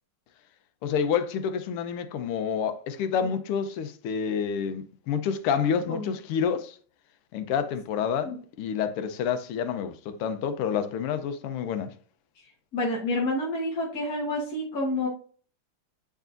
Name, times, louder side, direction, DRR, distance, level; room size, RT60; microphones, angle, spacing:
voice 1, 0.8-6.8 7.3-8.3 8.6-11.9, left 7 dB, 90° left, 1.6 m, -28 dB
voice 2, 12.7-15.1, left 1 dB, 45° left, 1.7 m, -28 dB
7.8 x 4.9 x 2.5 m
omnidirectional pair, 2.4 m